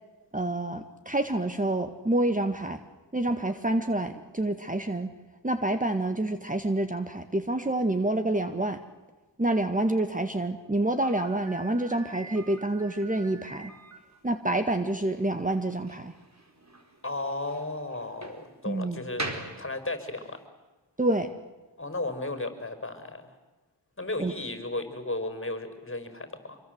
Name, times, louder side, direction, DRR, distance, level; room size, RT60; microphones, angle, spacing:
voice 1, 0.3-2.8 3.1-5.1 5.4-8.8 9.4-13.7 14.2-16.1 18.6-19.0 21.0-21.3 24.2-24.3, right 1 dB, 20° right, 8 dB, 1.7 m, -27 dB
Slam, 11.0-20.4, right 2 dB, 40° right, 4.5 m, -43 dB
voice 2, 17.0-20.4 21.8-23.3 24.0-26.6, left 2 dB, 30° left, 8 dB, 5.1 m, -34 dB
26.0 x 23.0 x 8.0 m, 1.2 s
cardioid pair, 55°, 43 cm